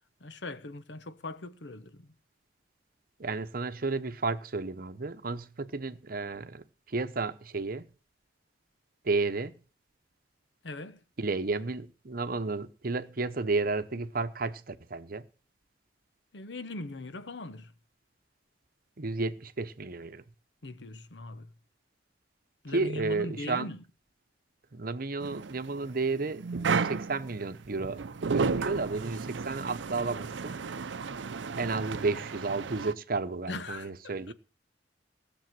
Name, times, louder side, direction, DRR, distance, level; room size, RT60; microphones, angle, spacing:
voice 1, 0.2-2.1 10.6-11.0 16.3-17.7 20.6-21.5 22.6-23.8 33.5-33.9 34.3-34.4, left 2 dB, 70° left, 1.0 m, -40 dB
voice 2, 3.2-7.9 9.0-9.6 11.2-15.2 19.0-20.2 22.7-23.7 24.7-28.0 28.3-30.6 31.5-34.3, right 3 dB, 50° right, 0.9 m, -32 dB
sound 1, 25.2-32.9, right 5 dB, 85° right, 0.6 m, -33 dB
17.0 x 7.0 x 7.6 m
head